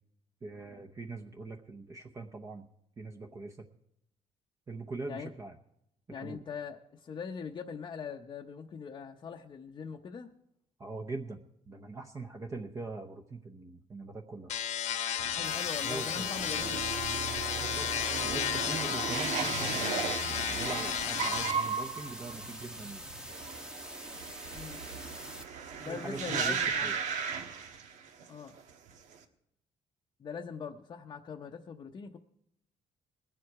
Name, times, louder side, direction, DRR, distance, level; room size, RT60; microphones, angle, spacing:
voice 1, 0.4-2.7 3.0-3.7 4.7-5.5 6.1-6.4 10.8-11.4 11.7-14.5 15.8-16.3 17.6-23.1 25.9-27.0, right 3 dB, 25° right, 3 dB, 0.8 m, -42 dB
voice 2, 6.1-10.3 15.3-16.9 24.5-24.8 25.8-27.1 28.3-28.6 30.2-32.2, left 6 dB, 35° left, 2 dB, 0.7 m, -42 dB
sound 1, 14.5-21.5, left 9 dB, 75° left, 1.0 m, -33 dB
sound 2, 15.2-28.3 28.6-29.1, right 6 dB, 90° right, 1.4 m, -36 dB
sound 3, 15.4-25.4, equal, 5° right, 1.0 m, -45 dB
21.0 x 7.7 x 4.7 m, 0.76 s
cardioid pair, 155°, 12 cm